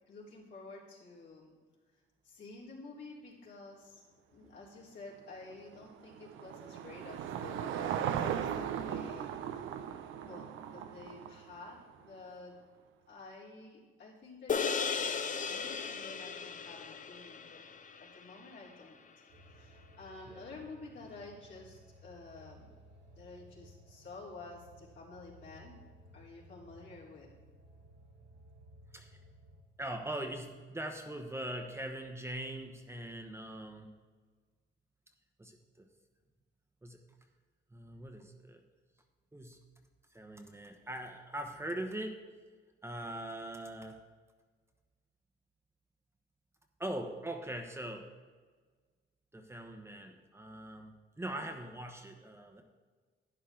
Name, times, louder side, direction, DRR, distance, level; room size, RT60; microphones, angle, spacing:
voice 1, 0.1-1.5 2.2-4.0 4.3-9.7 10.2-12.6 13.1-17.6 18.0-19.0 19.5-22.7 23.1-25.8 26.1-27.3, left 3 dB, 65° left, -5 dB, 3.8 m, -50 dB
Car passing by / Engine, 5.4-11.9, right 9 dB, 90° right, 0.7 m, -38 dB
sound 1, 14.5-19.1, left 6 dB, 40° left, 0.7 m, -36 dB
sound 2, 19.3-29.6, right 1 dB, 60° right, 1.7 m, -58 dB
voice 2, 29.8-33.9 35.4-35.9 36.8-37.0 37.7-38.6 39.3-39.6 40.1-42.2 42.8-44.0 46.8-48.1 49.3-52.6, right 1 dB, 15° right, 4 dB, 1.1 m, -41 dB
11.5 x 10.0 x 3.8 m, 1.5 s
cardioid pair, 90°, 20 cm